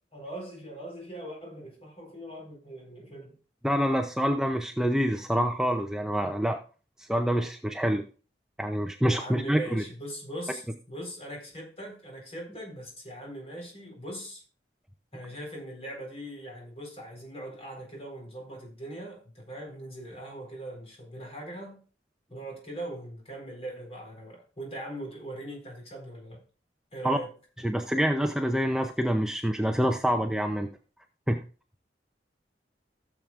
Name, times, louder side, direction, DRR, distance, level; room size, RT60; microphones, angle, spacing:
voice 1, 0.1-3.3 9.1-14.4 15.1-21.8 22.3-26.4 26.9-27.3, right 1 dB, 35° left, 4.2 m, -40 dB
voice 2, 3.6-6.6 7.0-8.0 8.6-9.8 27.0-27.2 27.6-30.7 31.3-31.4, equal, 5° right, 0.6 m, -26 dB
15.5 x 7.3 x 2.5 m
head